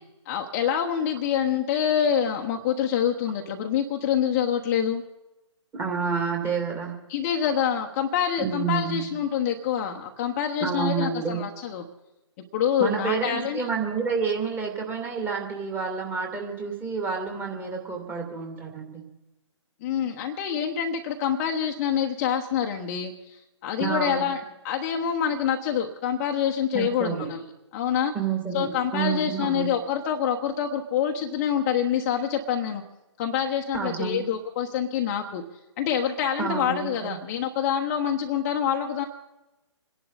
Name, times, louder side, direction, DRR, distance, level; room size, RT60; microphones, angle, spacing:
voice 1, 0.3-5.0 7.1-11.9 12.5-13.6 19.8-27.5 27.7-28.1 28.5-32.8 33.2-35.4 35.8-39.0, left 8 dB, 30° left, 3 dB, 1.1 m, -26 dB
voice 2, 5.7-6.9 8.4-9.1 10.6-11.4 12.8-19.0 23.8-24.2 26.7-27.3 28.1-29.7 33.7-34.2 36.4-37.2, right 6 dB, 15° right, 1 dB, 2.6 m, -29 dB
27.5 x 11.0 x 4.1 m, 1.0 s
figure-of-eight pair, 135°, 16 cm